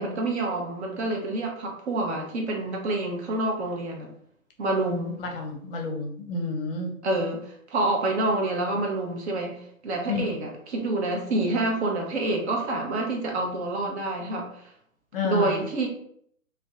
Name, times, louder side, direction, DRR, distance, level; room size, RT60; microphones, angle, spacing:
voice 1, 0.0-4.1 4.6-5.2 7.0-14.5 15.2-15.9, right 2 dB, 50° right, 0 dB, 0.8 m, -27 dB
voice 2, 5.2-6.9 10.1-10.2 15.1-15.6, left 3 dB, 40° left, 2 dB, 0.6 m, -30 dB
2.6 x 2.2 x 2.2 m, 0.64 s
figure-of-eight pair, 120°, 42 cm